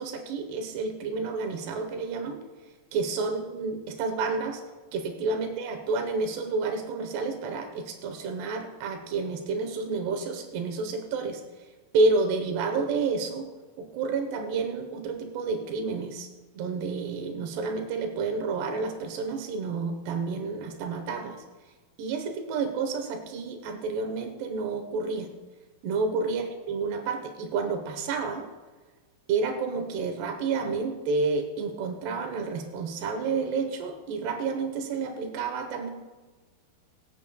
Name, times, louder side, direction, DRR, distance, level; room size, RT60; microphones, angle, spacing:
voice 1, 0.0-2.4 2.9-4.6 4.9-11.4 11.9-13.5 13.8-16.3 16.5-21.4 22.0-25.3 25.8-28.5 29.3-35.9, right 4 dB, 90° right, 4 dB, 3.2 m, -30 dB
24.5 x 8.2 x 2.3 m, 1.3 s
omnidirectional pair, 4.6 m